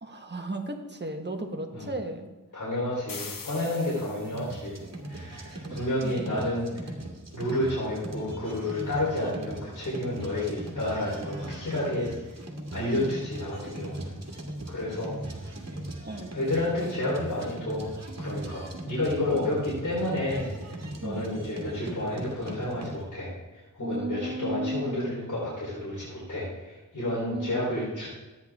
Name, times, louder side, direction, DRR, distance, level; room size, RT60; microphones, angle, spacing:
voice 1, 0.0-2.3 5.7-6.4 12.9-13.2 16.0-16.4 21.0-21.3 23.8-25.1 27.3-27.8, right 1 dB, 30° right, 4 dB, 1.3 m, -35 dB
voice 2, 2.5-4.8 5.1-6.9 7.3-12.4 12.7-14.1 14.7-15.1 15.4-15.5 16.3-17.9 18.2-23.3 23.7-28.1, left 1 dB, 65° left, -7 dB, 3.7 m, -30 dB
sound 1, 3.1-4.6, left 4 dB, 85° left, 1.1 m, -41 dB
sound 2, 4.3-23.0, right 1 dB, 50° right, 2.0 m, -39 dB
13.5 x 9.6 x 3.5 m, 1.2 s
wide cardioid pair, 85°, 33 cm